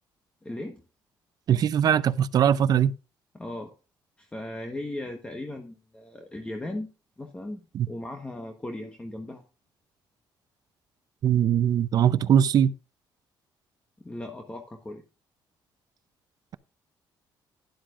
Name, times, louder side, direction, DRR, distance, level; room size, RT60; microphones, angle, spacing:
voice 1, 0.4-0.8 3.3-3.7 4.2-6.9 7.2-7.6 7.9-9.4 14.0-15.0, left 1 dB, 15° left, 1.2 m, -37 dB
voice 2, 1.5-2.9 7.7-7.9 11.2-12.7, right 9 dB, 50° right, 0.6 m, -21 dB
12.5 x 10.5 x 2.5 m
cardioid pair, 120°, 8 cm